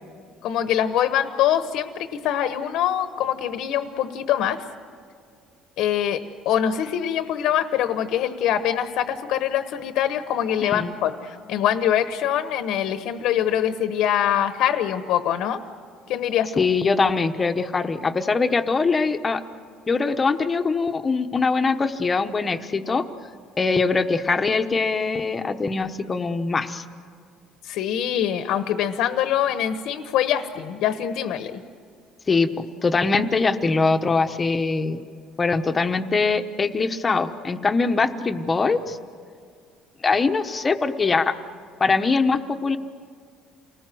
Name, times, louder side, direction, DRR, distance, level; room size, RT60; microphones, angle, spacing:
voice 1, 0.4-4.6 5.8-15.6 16.1-16.6 27.6-31.6, left 10 dB, 75° left, 9 dB, 1.1 m, -24 dB
voice 2, 10.6-10.9 16.6-19.4 19.9-23.0 23.6-26.8 32.3-32.5 32.8-35.0 35.4-39.0 40.0-41.3 41.8-42.8, left 4 dB, 20° left, 7 dB, 1.1 m, -22 dB
29.0 x 19.5 x 7.8 m, 2.3 s
cardioid pair, 135°, 0 cm